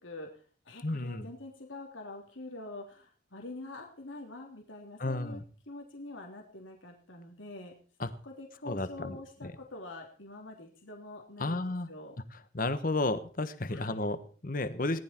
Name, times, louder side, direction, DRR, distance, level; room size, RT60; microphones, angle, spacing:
voice 1, 0.0-5.4 5.7-7.7 8.2-12.1 13.7-14.0, left 2 dB, 85° left, 1 dB, 3.4 m, -45 dB
voice 2, 0.8-1.3 5.0-5.4 8.0-8.1 8.6-9.5 11.4-11.9 12.3-15.0, left 2 dB, 45° left, 12 dB, 1.3 m, -33 dB
19.0 x 12.5 x 4.5 m, 0.41 s
head